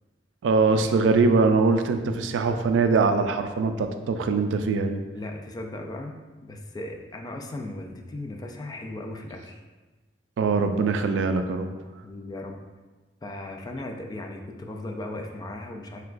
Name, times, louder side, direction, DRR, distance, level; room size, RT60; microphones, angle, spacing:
voice 1, 0.4-5.0 10.4-11.7, right 4 dB, 90° right, 8 dB, 0.3 m, -22 dB
voice 2, 5.1-9.6 12.0-12.6 13.2-16.0, left 1 dB, 20° left, 3 dB, 0.3 m, -37 dB
5.9 x 2.2 x 2.4 m, 1.2 s
head